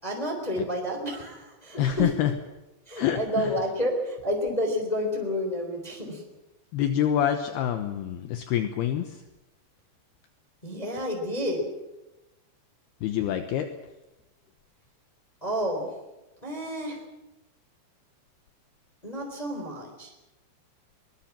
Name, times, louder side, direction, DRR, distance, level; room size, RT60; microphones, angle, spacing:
voice 1, 0.0-2.1 2.9-6.2 10.6-11.7 15.4-15.9 16.4-17.0 19.0-20.1, equal, 10° left, 2 dB, 3.8 m, -30 dB
voice 2, 1.8-2.3 3.0-3.6 6.7-9.2 13.0-13.7, left 10 dB, 75° left, 7 dB, 3.0 m, -26 dB
23.0 x 20.5 x 7.6 m, 0.99 s
omnidirectional pair, 4.9 m